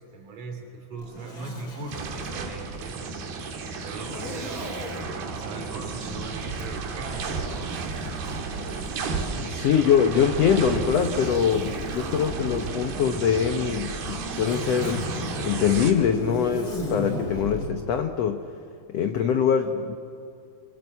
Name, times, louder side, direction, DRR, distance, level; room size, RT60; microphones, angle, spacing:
voice 1, 0.0-3.0 3.8-7.8 19.1-19.4, right 3 dB, 60° right, 4 dB, 4.5 m, -40 dB
Zipper (clothing), 1.0-2.4 4.0-5.1 6.5-9.7 10.5-12.8 13.7-17.7, left 1 dB, 30° left, 4.7 m, -37 dB
sound 1, 1.9-15.9, right 4 dB, 80° right, 4.0 m, -33 dB
voice 2, 9.4-18.5 18.9-20.0, left 7 dB, 75° left, 6 dB, 1.5 m, -23 dB
27.5 x 23.5 x 8.4 m, 2.5 s
omnidirectional pair, 4.3 m